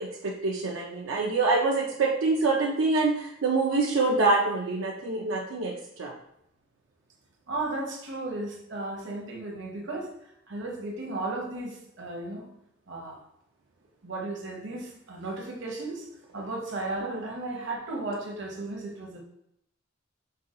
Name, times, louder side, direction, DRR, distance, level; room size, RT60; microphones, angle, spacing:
voice 1, 0.0-6.1 17.0-17.2, right 3 dB, 90° right, -1 dB, 0.5 m, -26 dB
voice 2, 7.5-10.1 10.5-12.5 12.9-13.2 14.0-16.1 16.3-19.2, right 2 dB, 65° right, 1 dB, 0.9 m, -35 dB
5.5 x 2.3 x 3.7 m, 0.78 s
head